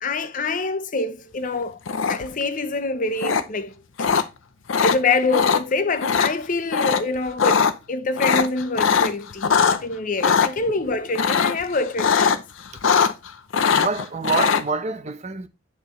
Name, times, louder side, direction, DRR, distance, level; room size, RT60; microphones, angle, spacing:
voice 1, 0.0-1.8 2.1-4.1 4.8-12.4, left 3 dB, 45° left, 0.6 m, -25 dB
sound 1, 1.9-2.4 3.2-3.4 4.0-4.2 4.7-5.0 5.3-5.6 6.0-6.3 6.7-7.0 7.3-7.7 8.2-9.8 10.2-10.5 11.1-11.6 12.0-12.4 12.7-13.3 13.5-14.6, left 6 dB, 85° left, 0.6 m, -20 dB
voice 2, 13.7-15.5, right 4 dB, 35° right, 0.7 m, -26 dB
9.0 x 4.5 x 3.1 m
head